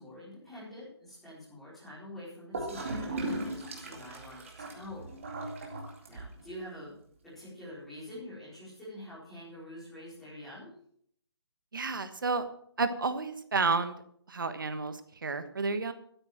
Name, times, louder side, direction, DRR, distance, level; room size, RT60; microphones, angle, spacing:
voice 1, 0.0-5.1 6.1-6.9 7.2-10.7, left 1 dB, ahead, -12 dB, 4.6 m, -46 dB
Gurgling / Toilet flush, 2.5-6.5, right 2 dB, 30° right, 2.3 m, -37 dB
voice 2, 11.7-12.5 12.8-14.0 14.3-15.9, right 4 dB, 50° right, 10 dB, 1.4 m, -31 dB
13.0 x 8.8 x 7.4 m, 0.65 s
hypercardioid pair, 180°, 14 cm